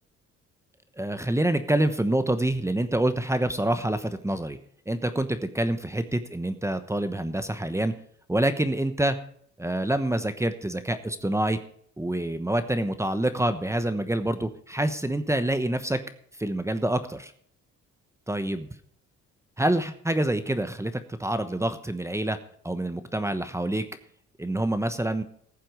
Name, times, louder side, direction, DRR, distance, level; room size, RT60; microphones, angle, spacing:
voice 1, 1.0-4.6 4.9-7.9 8.3-9.2 9.6-11.6 12.0-16.0 16.4-17.3 18.3-18.7 19.6-22.4 22.6-23.9 24.4-25.2, right 1 dB, 10° right, 10 dB, 1.0 m, -26 dB
14.5 x 7.6 x 5.1 m, 0.62 s
cardioid pair, 90°, 30 cm